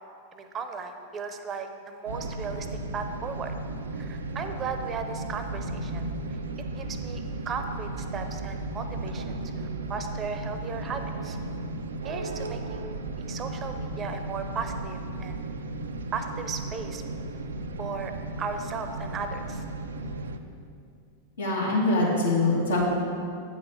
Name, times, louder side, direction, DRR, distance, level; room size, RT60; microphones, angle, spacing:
voice 1, 0.3-2.7 2.9-3.5 3.9-6.0 6.3-6.4 6.7-11.4 12.0-15.4 16.1-17.0 17.8-18.1 18.4-19.6, right 5 dB, 25° right, 7 dB, 0.7 m, -36 dB
sound 1, 2.1-20.4, right 2 dB, 70° right, 0.5 m, -35 dB
voice 2, 21.4-22.8, left 2 dB, 70° left, -5 dB, 2.2 m, -23 dB
8.8 x 5.5 x 5.8 m, 2.4 s
figure-of-eight pair, 90°, 0 cm